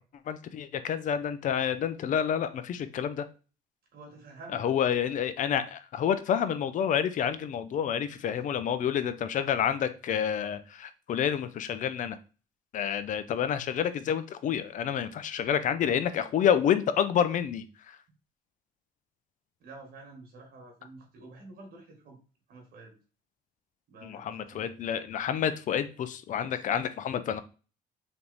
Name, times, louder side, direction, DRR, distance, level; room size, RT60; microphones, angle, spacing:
voice 1, 0.3-3.2 4.6-12.2 12.7-18.0 24.0-27.4, left 8 dB, 50° left, 12 dB, 0.5 m, -29 dB
voice 2, 3.9-4.7 5.0-5.1 8.2-8.5 19.6-22.2 22.5-23.0 23.9-24.7, right 3 dB, 65° right, 1 dB, 1.5 m, -49 dB
3.5 x 2.9 x 3.9 m, 0.35 s
cardioid pair, 110°, 17 cm